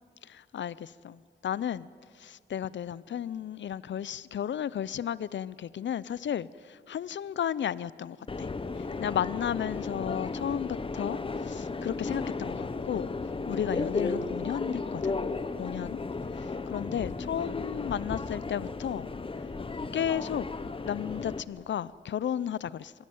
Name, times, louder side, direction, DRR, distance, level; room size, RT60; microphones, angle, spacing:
voice 1, 0.2-1.9 2.1-8.5 8.8-13.1 13.5-15.2 15.5-16.0 16.4-19.1 19.9-20.5 20.8-22.9, left 9 dB, 80° left, 20 dB, 0.5 m, -33 dB
Subway metro underground, 8.3-21.4, left 3 dB, 30° left, 0.8 m, -34 dB
24.0 x 16.0 x 9.2 m, 2.3 s
wide cardioid pair, 155°, 19 cm